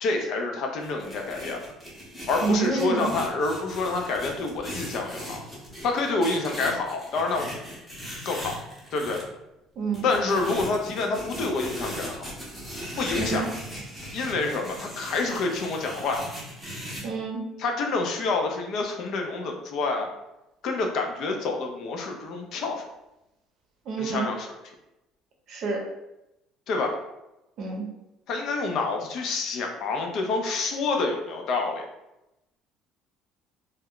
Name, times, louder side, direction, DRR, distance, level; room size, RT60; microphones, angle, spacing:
voice 1, 0.0-1.6 2.3-5.4 5.8-7.5 8.3-8.6 8.9-9.2 10.0-12.2 13.0-13.5 14.1-16.2 17.6-20.1 20.6-22.8 24.0-24.5 26.7-27.0 28.3-31.8, left 3 dB, 55° left, 2 dB, 0.4 m, -27 dB
sound 1, 0.8-9.2 9.9-17.0, equal, ahead, 0.7 m, -38 dB
voice 2, 2.4-3.1 9.8-10.1 13.1-13.5 17.0-17.4 23.9-24.3 25.5-25.8 27.6-27.8, right 4 dB, 45° right, 0 dB, 0.6 m, -28 dB
2.2 x 2.0 x 3.6 m, 0.91 s
cardioid pair, 155°, 0 cm